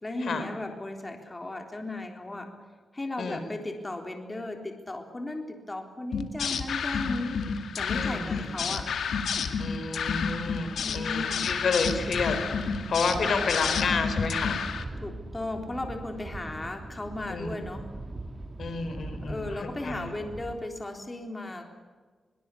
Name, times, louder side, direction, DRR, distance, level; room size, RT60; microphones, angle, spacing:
voice 1, 0.0-2.5 2.9-7.4 7.8-8.9 10.8-11.5 12.8-12.9 13.2-13.6 15.0-17.9 19.2-21.6, left 2 dB, 20° left, 4 dB, 3.6 m, -36 dB
sound 1, 6.1-14.8, left 6 dB, 90° left, 2.2 m, -30 dB
voice 2, 7.9-8.5 9.6-14.6 17.3-17.6 18.6-20.1, left 4 dB, 70° left, 8 dB, 4.1 m, -30 dB
sound 2, 11.7-20.6, right 2 dB, 25° right, 2.2 m, -41 dB
23.0 x 22.0 x 8.4 m, 1.5 s
wide cardioid pair, 95°, 0 cm